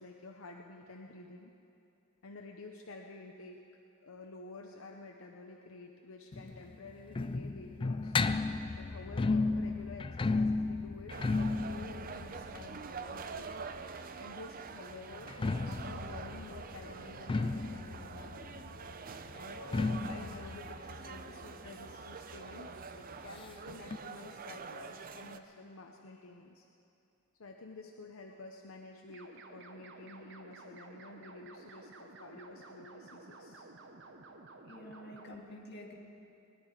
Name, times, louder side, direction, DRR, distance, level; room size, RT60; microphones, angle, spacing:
voice 1, 0.0-1.5 2.2-3.6 4.0-8.2 8.5-13.5 14.2-18.5 19.3-26.6 27.4-33.6, left 3 dB, 80° left, 2 dB, 0.8 m, -50 dB
sound 1, 6.3-14.0 15.1-22.5 22.8-22.9 23.1-23.2 23.9-24.0, left 3 dB, 25° left, 0.3 m, -34 dB
sound 2, 11.1-25.4, right 5 dB, 45° right, 0.6 m, -46 dB
voice 2, 18.5-19.0 19.4-20.0 21.4-21.6 34.6-35.9, left 1 dB, 55° left, -2 dB, 2.4 m, -50 dB
sound 3, 29.1-35.4, right 3 dB, 60° right, 1.0 m, -53 dB
21.0 x 11.0 x 4.9 m, 2.6 s
head